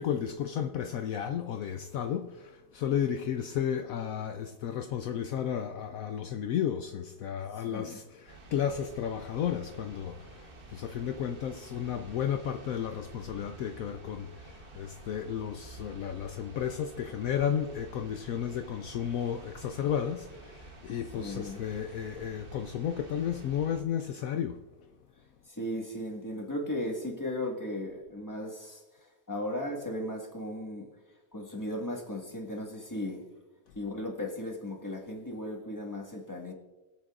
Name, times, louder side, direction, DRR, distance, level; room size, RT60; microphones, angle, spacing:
voice 1, 0.0-24.6, left 9 dB, 70° left, 0.9 m, -33 dB
voice 2, 7.5-8.1 21.2-21.7 25.4-30.9 31.3-33.3 33.7-36.5, left 1 dB, 10° left, 1.6 m, -36 dB
sound 1, 8.3-23.8, right 3 dB, 40° right, 1.2 m, -50 dB
22.0 x 7.9 x 2.5 m
omnidirectional pair, 1.7 m